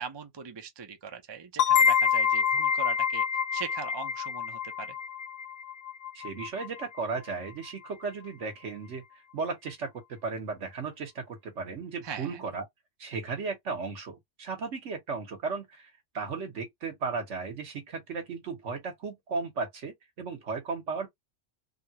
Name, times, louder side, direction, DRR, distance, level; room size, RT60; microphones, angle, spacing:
voice 1, 0.0-3.2 3.5-5.0 12.0-12.4, right 6 dB, 30° right, 0.5 m, -40 dB
sound 1, 1.6-7.0, left 7 dB, 85° left, 1.2 m, -27 dB
voice 2, 6.1-9.0 9.3-12.6 13.0-21.1, right 4 dB, 70° right, 1.4 m, -35 dB
3.5 x 2.3 x 2.8 m
omnidirectional pair, 1.3 m